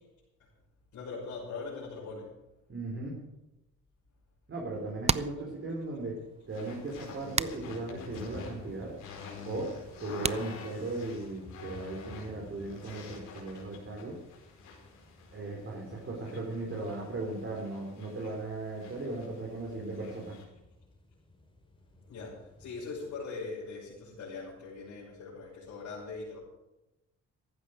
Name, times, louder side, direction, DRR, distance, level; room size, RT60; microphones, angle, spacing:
voice 1, 0.9-2.3 22.1-26.4, left 4 dB, 65° left, -8 dB, 6.3 m, -41 dB
voice 2, 2.7-3.2 4.5-6.2 6.5-9.0 9.5-14.2 15.3-20.4, right 2 dB, 45° right, -2 dB, 4.1 m, -37 dB
sound 1, 4.7-11.3, right 6 dB, 20° right, 0.4 m, -38 dB
sound 2, 5.8-23.2, left 2 dB, 15° left, 3.6 m, -54 dB
sound 3, 6.5-20.4, left 5 dB, 85° left, 4.9 m, -48 dB
15.0 x 12.0 x 5.1 m, 0.97 s
cardioid pair, 90°, 30 cm